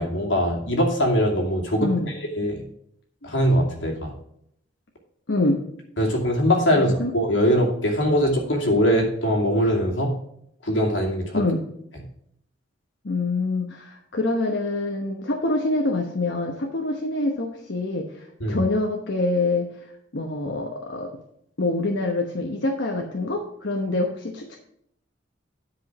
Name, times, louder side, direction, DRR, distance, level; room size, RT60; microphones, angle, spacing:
voice 1, 0.0-2.6 3.2-4.1 6.0-10.1 10.6-11.4 18.4-18.6, equal, 90° left, 0 dB, 2.5 m, -22 dB
voice 2, 1.8-2.1 3.2-3.3 5.3-5.6 6.7-7.1 11.3-11.6 13.0-19.7 20.1-21.2 21.6-24.6, left 2 dB, 70° left, 1 dB, 1.0 m, -25 dB
10.0 x 5.2 x 6.0 m, 0.72 s
head